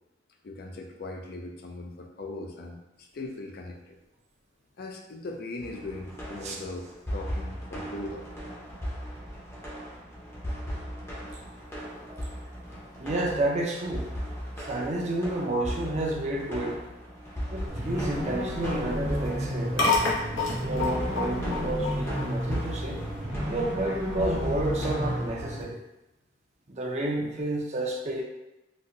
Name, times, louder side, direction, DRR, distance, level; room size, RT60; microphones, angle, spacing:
voice 1, 0.4-4.0 4.8-8.4, left 2 dB, 55° left, 2 dB, 0.4 m, -39 dB
sound 1, 5.6-25.5, equal, 15° left, 0.6 m, -37 dB
voice 2, 13.0-14.1 14.6-16.8 17.5-19.9 20.6-23.0 23.5-25.8 26.7-28.2, right 1 dB, 35° right, -1 dB, 0.5 m, -30 dB
sound 2, 17.7-25.6, equal, 55° right, 0.9 m, -33 dB
sound 3, 17.8-23.2, left 3 dB, 85° left, 0.8 m, -32 dB
4.1 x 2.1 x 2.6 m, 0.94 s
head